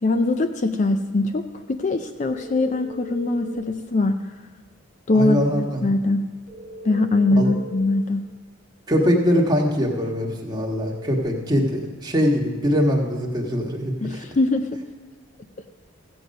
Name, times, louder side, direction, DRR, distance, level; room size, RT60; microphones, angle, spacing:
voice 1, 0.0-4.1 5.1-6.2 6.8-8.2 14.0-14.8, left 2 dB, 35° left, 8 dB, 0.4 m, -22 dB
sound 1, 2.2-3.6 6.5-7.9 10.7-11.2, equal, 90° left, 3.8 m, -39 dB
voice 2, 5.1-5.8 7.4-7.5 8.9-14.3, equal, 20° right, -1 dB, 1.4 m, -22 dB
15.0 x 7.8 x 5.3 m, 1.3 s
head